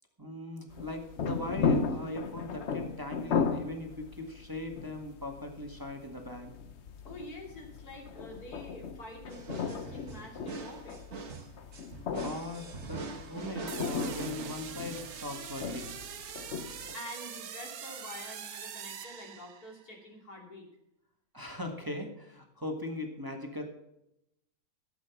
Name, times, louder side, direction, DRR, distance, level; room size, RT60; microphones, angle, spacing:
voice 1, 0.2-6.5 12.2-16.0 21.3-23.6, left 1 dB, 15° right, 2 dB, 1.7 m, -40 dB
sound 1, 0.7-16.9, left 5 dB, 55° left, 1.0 m, -36 dB
voice 2, 7.1-11.0 16.9-20.7, left 1 dB, 90° left, 1 dB, 3.4 m, -47 dB
sound 2, 9.3-15.1, right 3 dB, 50° right, 1.6 m, -42 dB
sound 3, 13.7-19.8, right 8 dB, 75° right, 1.4 m, -43 dB
13.5 x 8.1 x 5.9 m, 0.83 s
omnidirectional pair, 1.6 m